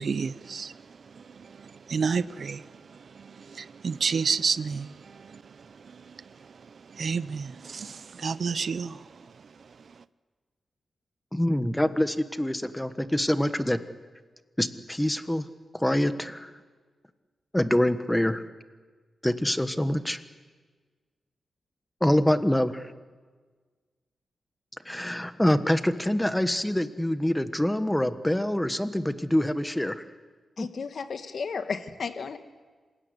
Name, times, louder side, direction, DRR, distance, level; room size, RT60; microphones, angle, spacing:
voice 1, 0.0-9.3 9.6-9.7, right 5 dB, 55° right, 15 dB, 0.7 m, -32 dB
voice 2, 11.3-13.8 14.6-15.5 15.7-16.5 17.5-18.4 19.2-20.2 22.0-22.9 24.8-30.0 30.6-30.7, left 1 dB, 5° left, 10 dB, 1.3 m, -25 dB
voice 3, 30.6-32.4, left 5 dB, 60° left, 8 dB, 1.6 m, -33 dB
27.0 x 17.0 x 9.7 m, 1.5 s
wide cardioid pair, 100°, 0 cm